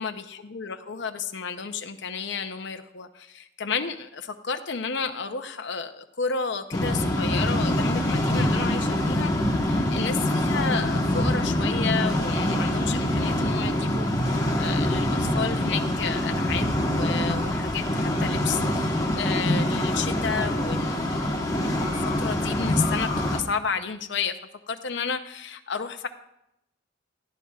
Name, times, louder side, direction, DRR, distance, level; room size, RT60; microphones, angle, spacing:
voice 1, 0.0-9.3 9.7-21.0 21.5-24.3 24.7-26.1, left 5 dB, 60° left, 6 dB, 0.7 m, -32 dB
sound 1, 6.7-23.4, left 1 dB, 20° left, 1.2 m, -25 dB
sound 2, 18.5-19.1 19.4-19.6 20.0-20.2 20.5-21.3 21.6-22.2 22.5-23.3, left 6 dB, 40° left, 4.4 m, -41 dB
18.0 x 12.0 x 2.4 m, 0.83 s
head